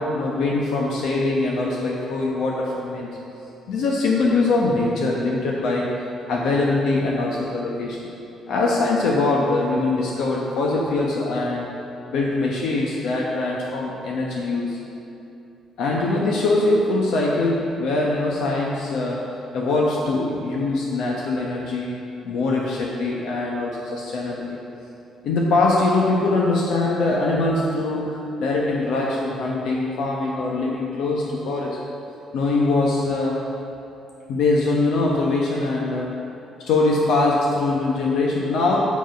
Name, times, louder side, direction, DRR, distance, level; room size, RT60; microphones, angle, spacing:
voice 1, 0.0-3.1 3.7-5.9 6.3-8.1 8.5-11.7 12.1-14.8 15.8-22.0 22.2-24.6 25.2-31.8 32.3-33.4 34.3-36.2 36.6-39.0, left 2 dB, 70° left, -2 dB, 1.0 m, -22 dB
8.1 x 7.1 x 5.1 m, 2.8 s
cardioid pair, 175°, 0 cm